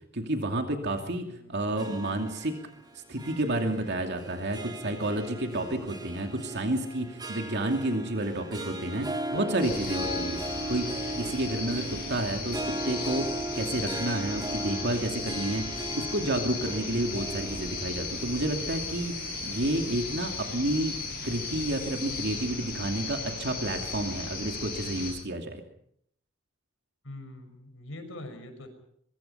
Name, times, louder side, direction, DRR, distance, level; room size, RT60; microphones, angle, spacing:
voice 1, 0.1-2.5 3.1-10.4 10.7-10.9 11.1-13.3 13.5-20.9 21.2-25.6, right 1 dB, 55° right, 4 dB, 2.7 m, -30 dB
voice 2, 1.0-1.8 27.0-28.7, left 1 dB, 70° left, 7 dB, 6.0 m, -44 dB
Harp, 1.7-20.2, right 2 dB, 20° right, 2.3 m, -38 dB
sound 1, 9.6-25.1, left 4 dB, 50° left, 6.7 m, -36 dB
24.0 x 23.0 x 5.7 m, 0.70 s
head